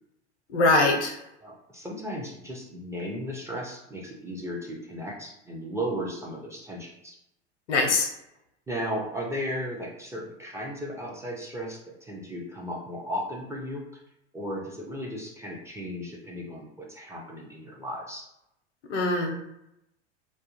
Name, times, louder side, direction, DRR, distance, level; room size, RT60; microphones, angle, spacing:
voice 1, 0.5-1.2 7.7-8.1 18.9-19.5, left 2 dB, 80° left, 3 dB, 0.7 m, -23 dB
voice 2, 1.4-7.2 8.7-13.8 14.3-18.2, equal, 10° right, -3 dB, 0.3 m, -35 dB
2.3 x 2.1 x 2.9 m, 0.84 s
hypercardioid pair, 85°, 34 cm